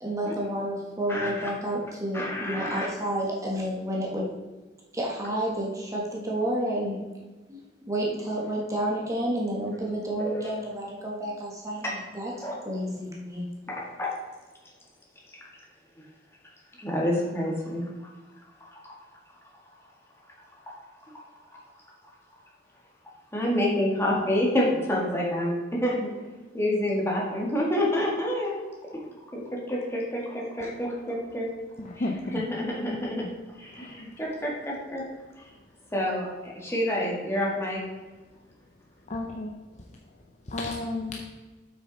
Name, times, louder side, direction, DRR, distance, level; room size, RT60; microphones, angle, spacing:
voice 1, 0.0-4.2 4.9-7.0 7.5-12.3 12.6-13.4, right 1 dB, 20° right, -3 dB, 1.5 m, -30 dB
voice 2, 1.1-1.5 2.1-2.9 10.2-10.4 11.8-12.0 12.4-12.5 13.7-14.1 16.8-17.9 18.8-19.0 20.8-21.1 23.3-26.1 26.5-28.6 28.8-28.9 29.3-31.5 32.3-33.2 33.6-35.0 35.4-35.5 35.9-37.8, left 1 dB, 15° left, -3 dB, 1.8 m, -28 dB
voice 3, 31.8-32.4 33.7-34.0 39.1-39.6 40.5-41.2, left 2 dB, 40° left, 0 dB, 0.6 m, -32 dB
7.8 x 6.3 x 4.0 m, 1.3 s
head